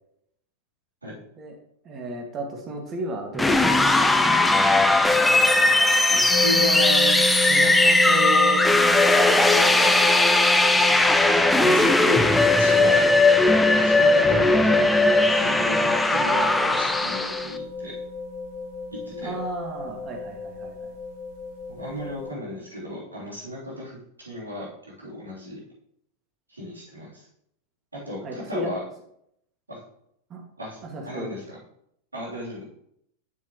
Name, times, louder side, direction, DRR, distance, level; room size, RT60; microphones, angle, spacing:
voice 1, 1.8-4.3 13.7-13.9 19.2-20.9 28.2-28.8 30.3-30.4 30.8-31.4, right 1 dB, 25° right, 1 dB, 2.0 m, -34 dB
sound 1, 3.3-17.5, left 2 dB, 5° left, 0.5 m, -19 dB
voice 2, 6.1-8.6 9.3-9.9 10.7-11.1 11.5-12.2 12.6-13.1 13.8-17.9 18.9-19.3 21.7-24.7 25.0-25.6 26.5-27.3 27.9-28.8 29.7-29.8 30.6-31.6 32.1-32.6, left 1 dB, 80° right, -5 dB, 3.3 m, -34 dB
sound 2, 6.3-22.3, left 2 dB, 50° left, 1.8 m, -31 dB
8.6 x 7.1 x 3.1 m, 0.73 s
figure-of-eight pair, 90°, 0 cm